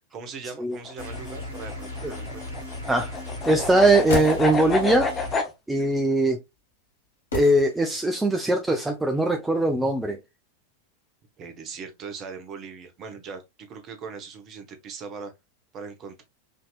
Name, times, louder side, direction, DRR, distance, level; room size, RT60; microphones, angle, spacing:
voice 1, 0.1-2.6 11.4-13.4 13.7-15.3 15.7-16.2, right 5 dB, 30° right, 1.0 m, -39 dB
sound 1, 0.8-5.5, left 4 dB, 20° left, 0.8 m, -30 dB
sound 2, 1.0-5.4, left 1 dB, 80° right, 1.7 m, -36 dB
voice 2, 3.5-5.1 5.7-6.4 7.3-10.2, right 1 dB, 5° right, 0.5 m, -21 dB
sound 3, 3.7-4.9 7.3-8.2 8.5-8.6, left 1 dB, 70° left, 1.6 m, -34 dB
5.0 x 2.8 x 2.4 m
figure-of-eight pair, 90°, 0 cm